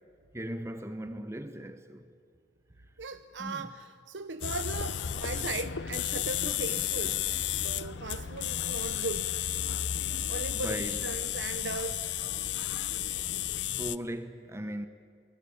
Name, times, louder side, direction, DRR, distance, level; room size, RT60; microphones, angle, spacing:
voice 1, 0.3-2.1 3.4-3.7 10.6-11.0 13.8-14.9, right 1 dB, 15° right, 1.0 m, -38 dB
voice 2, 3.0-7.2 7.5-9.3 10.3-12.0, right 3 dB, 85° right, 0.9 m, -38 dB
sound 1, 4.4-14.0, left 10 dB, 75° left, 0.7 m, -32 dB
28.5 x 20.0 x 8.8 m
head